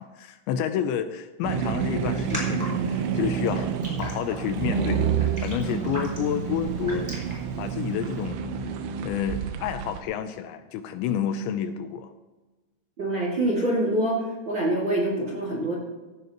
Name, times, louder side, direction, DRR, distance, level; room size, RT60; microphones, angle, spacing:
voice 1, 0.0-3.7 4.0-5.0 5.4-7.2 7.6-8.4 9.0-12.1, left 9 dB, 80° left, 9 dB, 2.9 m, -29 dB
sound 1, 1.4-10.0, right 7 dB, 80° right, 3.3 m, -29 dB
Raindrop, 2.0-8.3, equal, 5° right, 5.1 m, -40 dB
voice 2, 13.0-14.2 14.5-15.7, right 1 dB, 35° right, -3 dB, 2.1 m, -25 dB
16.5 x 16.0 x 3.0 m, 1.2 s
omnidirectional pair, 5.4 m